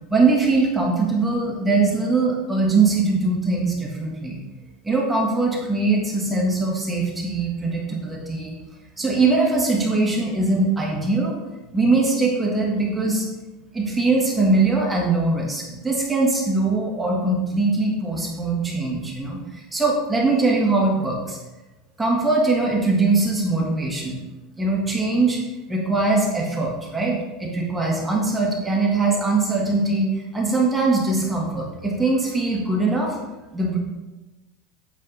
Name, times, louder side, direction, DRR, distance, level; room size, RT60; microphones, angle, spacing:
voice 1, 0.1-4.4 4.8-8.5 9.0-11.4 11.7-13.3 13.7-21.4 22.0-24.2 24.6-25.4 25.7-30.1 30.3-33.2 33.5-33.8, right 3 dB, 10° right, -3 dB, 1.5 m, -21 dB
8.5 x 3.5 x 5.2 m, 1.1 s
supercardioid pair, 150°, 0 cm